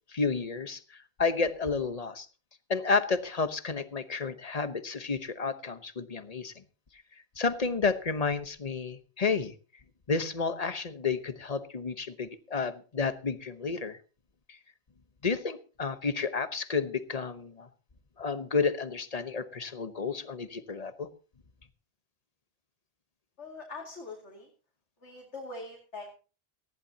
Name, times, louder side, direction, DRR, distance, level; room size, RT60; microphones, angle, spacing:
voice 1, 0.1-2.3 2.7-6.6 7.4-9.5 10.1-14.0 14.5-14.6 15.2-17.7 18.2-21.1, left 4 dB, 35° left, 11 dB, 1.1 m, -31 dB
voice 2, 23.4-24.5 25.0-26.1, left 3 dB, 85° left, 0 dB, 2.7 m, -43 dB
19.0 x 14.5 x 2.9 m, 0.34 s
omnidirectional pair, 1.1 m